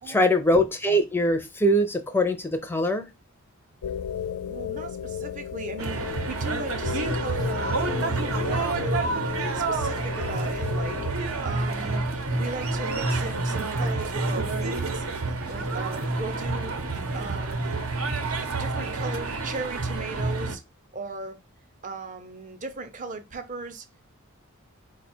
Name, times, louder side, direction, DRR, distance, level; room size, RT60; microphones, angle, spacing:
voice 1, 0.1-3.1, equal, 10° left, 0.5 m, -22 dB
sound 1, 3.8-11.1, left 8 dB, 75° left, 0.3 m, -34 dB
voice 2, 4.5-9.2 9.5-12.0 12.4-15.0 15.5-16.7 17.1-17.8 18.5-20.6 20.9-21.4 21.8-23.9, right 3 dB, 35° right, 0.6 m, -37 dB
sound 2, 5.8-20.6, right 3 dB, 70° right, 0.8 m, -28 dB
4.7 x 2.3 x 4.3 m
head